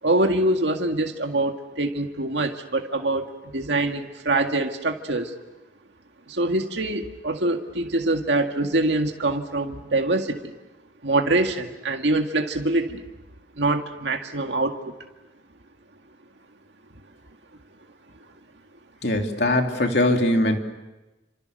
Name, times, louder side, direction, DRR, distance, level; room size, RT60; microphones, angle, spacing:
voice 1, 0.0-3.3 3.5-5.3 6.3-10.4 11.0-13.0 13.6-14.9, right 2 dB, 80° right, 4 dB, 2.0 m, -24 dB
voice 2, 19.0-20.6, left 1 dB, 60° left, 3 dB, 3.1 m, -21 dB
29.5 x 26.5 x 6.7 m, 1.1 s
head